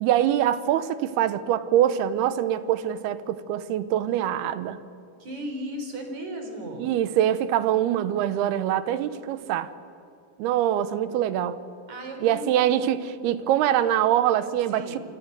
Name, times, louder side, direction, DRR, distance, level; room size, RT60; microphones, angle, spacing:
voice 1, 0.0-4.8 6.8-9.7 10.4-11.6 12.2-15.0, right 11 dB, 90° right, 13 dB, 2.9 m, -24 dB
voice 2, 5.2-6.9 11.9-12.5 14.7-15.0, right 1 dB, 50° right, 4 dB, 5.2 m, -35 dB
28.0 x 24.5 x 6.7 m, 2.5 s
omnidirectional pair, 4.4 m